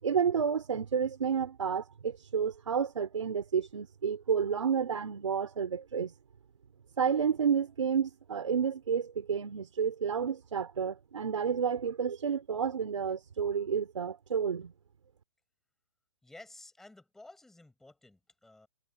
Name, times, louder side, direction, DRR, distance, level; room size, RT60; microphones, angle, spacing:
voice 1, 0.0-6.1 7.0-14.7, right 7 dB, 85° right, 5.3 m, -30 dB
voice 2, 16.2-18.7, left 2 dB, ahead, 6.1 m, -53 dB
hypercardioid pair, 175°, 16 cm